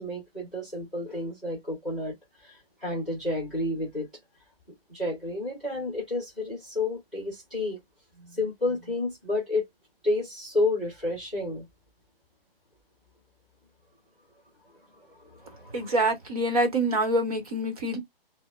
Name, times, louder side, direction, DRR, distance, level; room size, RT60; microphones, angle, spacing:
voice 1, 0.0-4.1 4.9-7.8 8.2-9.7 10.0-11.7 14.9-15.9, left 2 dB, ahead, 0.7 m, -31 dB
voice 2, 15.7-18.0, right 1 dB, 40° right, 1.2 m, -26 dB
4.7 x 2.2 x 2.3 m
hypercardioid pair, 170°, 30 cm